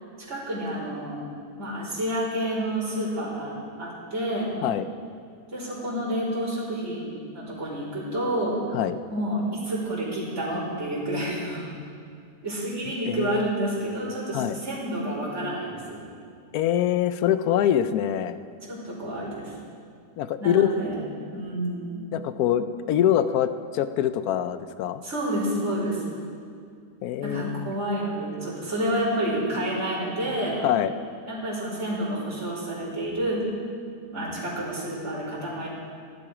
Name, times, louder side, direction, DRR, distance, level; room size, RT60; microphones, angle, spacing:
voice 1, 0.3-1.2 1.6-4.5 5.5-8.6 9.1-11.7 12.4-16.0 18.7-19.5 20.4-21.0 21.3-22.0 25.0-26.0 27.2-30.6 31.3-33.4 34.1-35.7, right 1 dB, 45° right, -9 dB, 4.2 m, -29 dB
voice 2, 13.1-13.5 14.3-14.6 16.5-18.4 20.2-20.8 22.1-25.0 27.0-27.7 30.6-30.9, left 10 dB, 70° left, 12 dB, 1.0 m, -24 dB
16.0 x 11.0 x 5.0 m, 2.3 s
omnidirectional pair, 1.8 m